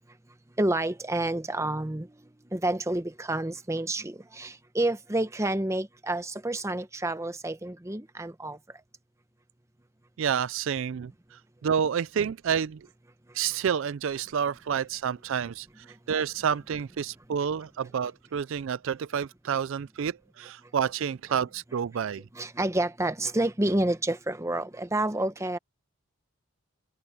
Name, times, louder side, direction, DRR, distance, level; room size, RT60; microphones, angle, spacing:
voice 1, 0.6-2.1 2.5-8.6 22.3-25.6, right 1 dB, 15° right, 0.8 m, -29 dB
voice 2, 10.2-12.9 13.3-15.7 16.1-22.2, right 7 dB, 60° right, 0.3 m, -29 dB
head